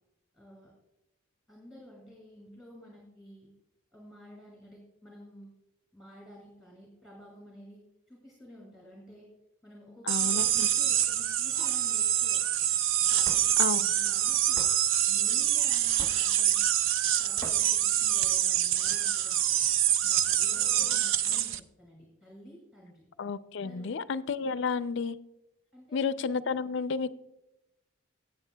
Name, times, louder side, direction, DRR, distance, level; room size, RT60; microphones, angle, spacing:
voice 1, 0.3-0.7 1.5-3.5 3.9-5.5 5.9-7.8 8.1-9.3 9.6-12.6 13.1-13.6 14.0-14.6 15.1-16.6 17.2-19.6 20.0-23.1 23.6-24.0 25.7-26.1, equal, ahead, -3 dB, 2.2 m, -51 dB
voice 2, 10.1-10.7 13.6-13.9 23.2-25.2 25.9-27.1, left 5 dB, 55° left, 15 dB, 0.4 m, -31 dB
sound 1, 10.1-21.6, right 11 dB, 65° right, 0.5 m, -26 dB
Hammer / Wood, 13.2-13.4 14.6-14.7 16.0-16.3 17.4-17.6, left 1 dB, 15° left, 0.9 m, -41 dB
16.5 x 8.3 x 2.2 m, 0.91 s
head